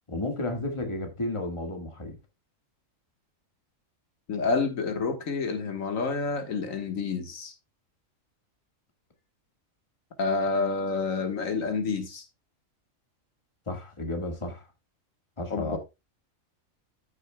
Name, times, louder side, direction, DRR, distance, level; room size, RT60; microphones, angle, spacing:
voice 1, 0.1-2.2 13.7-14.7 15.4-15.8, left 2 dB, 20° left, 1.7 m, -32 dB
voice 2, 4.3-7.5 10.2-12.2 15.5-15.8, left 4 dB, 80° left, 1.7 m, -28 dB
13.5 x 6.4 x 2.2 m
omnidirectional pair, 1.4 m